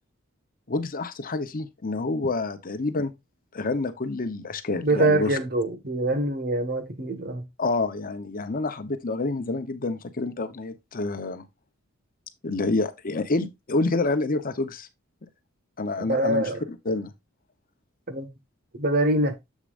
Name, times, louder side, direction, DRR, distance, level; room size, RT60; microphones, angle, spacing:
voice 1, 0.7-3.1 3.5-5.4 7.6-11.5 12.4-14.9 15.8-16.5 16.9-17.1, left 3 dB, 45° left, 0.9 m, -28 dB
voice 2, 4.8-7.5 16.0-16.6 18.1-18.3 18.8-19.3, right 1 dB, 50° right, 1.5 m, -24 dB
7.4 x 6.8 x 2.5 m
head